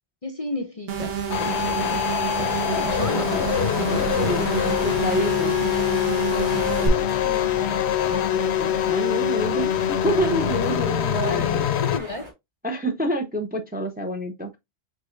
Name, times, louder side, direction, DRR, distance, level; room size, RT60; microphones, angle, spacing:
voice 1, 0.2-2.0 2.7-3.7 6.9-7.8 11.2-12.3, left 3 dB, 40° left, 0.6 m, -34 dB
sound 1, 0.9-6.9, right 7 dB, 65° right, 1.1 m, -29 dB
sound 2, 1.3-12.0, left 11 dB, 80° left, 0.8 m, -24 dB
sound 3, 1.4-12.3, right 1 dB, 30° right, 1.1 m, -39 dB
voice 2, 3.9-5.6 8.1-12.0 12.6-14.6, right 1 dB, 10° right, 0.5 m, -28 dB
4.9 x 4.0 x 2.5 m
omnidirectional pair, 1.1 m